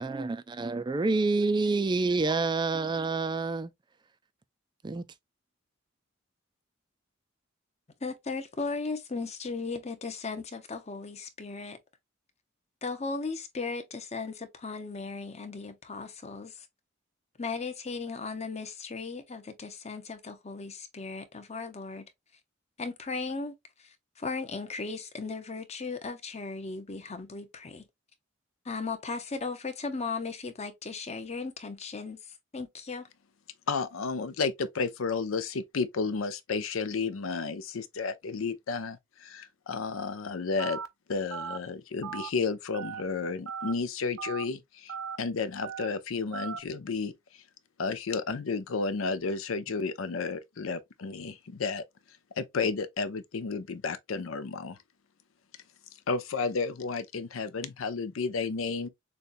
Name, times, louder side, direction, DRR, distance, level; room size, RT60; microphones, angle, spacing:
voice 1, 0.0-3.7 4.8-5.1, right 3 dB, 20° right, 0.3 m, -28 dB
voice 2, 8.0-11.8 12.8-16.7 17.4-22.1 22.8-23.5 23.8-27.8 28.6-33.1, left 4 dB, 35° left, 0.8 m, -37 dB
voice 3, 33.7-40.8 41.1-47.4 47.8-51.8 52.4-54.8 56.1-58.9, left 4 dB, 85° left, 0.6 m, -32 dB
Telephone, 40.6-40.9 41.3-41.6 42.0-42.3 42.7-43.0 43.5-43.7 44.2-44.4 44.9-45.2 45.6-45.9 46.3-46.6, right 7 dB, 90° right, 0.7 m, -37 dB
6.8 x 2.3 x 2.5 m
head